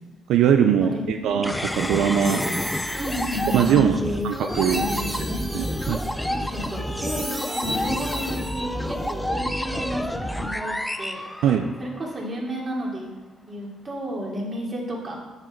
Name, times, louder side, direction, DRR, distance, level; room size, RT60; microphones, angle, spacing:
voice 1, 0.3-2.4 3.5-4.0 4.2-4.8 5.5-6.0 11.4-11.7, right 8 dB, 80° right, 6 dB, 0.6 m, -21 dB
voice 2, 0.8-1.4 3.0-4.3 4.6-5.4 6.2-11.4 11.8-13.1 13.5-15.2, equal, 35° right, -2 dB, 3.1 m, -32 dB
sound 1, 1.4-12.1, left 1 dB, 5° left, 0.6 m, -29 dB
sound 2, 1.7-9.0, equal, 10° right, 2.0 m, -36 dB
10.5 x 9.6 x 4.6 m, 1.2 s
cardioid pair, 110°, 0 cm